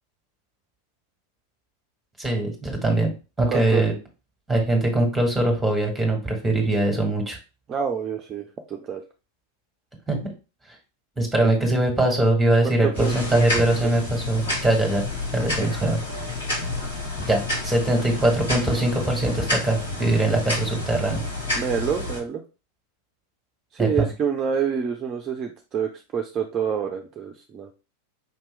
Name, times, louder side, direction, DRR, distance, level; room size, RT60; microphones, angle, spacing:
voice 1, 2.2-3.1 3.4-3.9 4.5-7.4 10.1-10.2 11.2-15.0 15.3-16.0 17.3-21.2 23.8-24.1, right 2 dB, 5° right, 2 dB, 1.7 m, -22 dB
voice 2, 3.5-3.9 7.7-9.0 11.4-11.5 12.6-13.9 15.6-15.7 21.5-22.4 23.7-27.7, right 7 dB, 25° right, 3 dB, 0.5 m, -27 dB
sound 1, 12.9-22.2, left 2 dB, 70° left, 2.0 m, -30 dB
5.3 x 2.9 x 3.3 m, 0.31 s
figure-of-eight pair, 90°, 0 cm